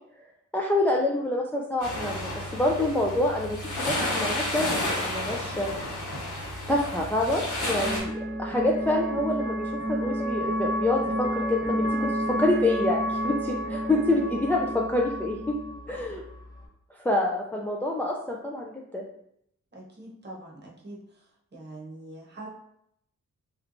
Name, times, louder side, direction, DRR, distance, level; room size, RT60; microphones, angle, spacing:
voice 1, 0.5-5.7 6.7-15.6 15.9-16.2 16.9-19.0, left 1 dB, 5° left, -1 dB, 0.3 m, -27 dB
sound 1, 1.8-8.0, left 1 dB, 70° left, 1.1 m, -31 dB
sound 2, 6.5-16.7, equal, 25° left, 1.1 m, -31 dB
voice 2, 19.7-21.2 21.5-22.5, right 1 dB, 35° right, -3 dB, 0.9 m, -43 dB
3.1 x 3.0 x 2.5 m, 0.73 s
wide cardioid pair, 95°, 32 cm